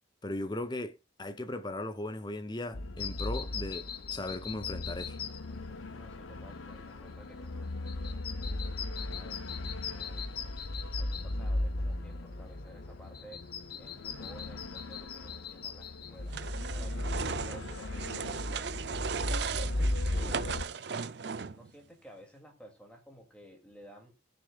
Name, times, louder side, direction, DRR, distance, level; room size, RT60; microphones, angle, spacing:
voice 1, 0.2-5.2, left 1 dB, 20° left, 0.7 m, -38 dB
sound 1, 2.7-20.7, left 1 dB, 85° left, 0.9 m, -37 dB
sound 2, 3.0-16.5, left 8 dB, 50° left, 1.2 m, -44 dB
voice 2, 6.0-10.3 10.9-13.4 13.8-16.4 16.7-18.6 19.4-20.7 21.5-24.2, right 1 dB, 5° left, 2.6 m, -54 dB
sound 3, 16.3-21.7, right 6 dB, 55° right, 0.5 m, -37 dB
19.5 x 6.8 x 2.4 m
head